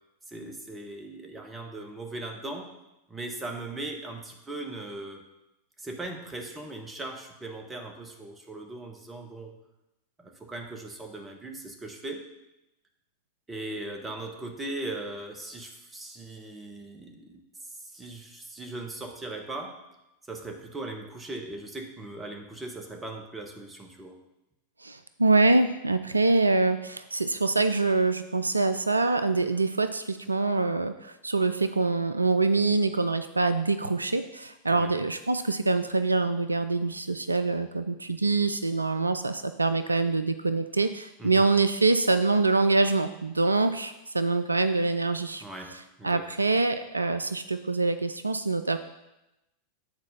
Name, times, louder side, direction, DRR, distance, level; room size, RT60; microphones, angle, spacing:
voice 1, 0.3-2.7 3.1-5.2 5.8-9.5 10.2-12.2 13.5-19.8 20.3-24.2 34.7-34.9 41.2-41.5 45.4-46.2, right 2 dB, 15° right, 3 dB, 1.2 m, -39 dB
voice 2, 24.8-45.4 46.0-48.8, right 3 dB, 80° right, 11 dB, 0.3 m, -25 dB
8.8 x 4.2 x 5.4 m, 0.94 s
figure-of-eight pair, 90°, 0 cm